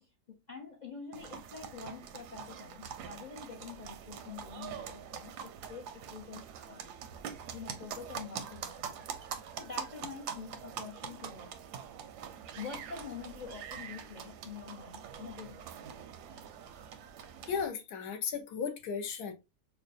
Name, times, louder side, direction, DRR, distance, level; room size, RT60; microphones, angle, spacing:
voice 1, 0.0-6.4 6.7-6.9 7.2-9.1 9.6-11.5 12.6-15.7, left 6 dB, 55° left, 0.4 m, -46 dB
sound 1, 1.1-17.7, right 8 dB, 85° right, 1.2 m, -44 dB
voice 2, 17.5-19.3, left 6 dB, 80° left, 1.3 m, -35 dB
5.4 x 2.2 x 2.5 m
omnidirectional pair, 1.7 m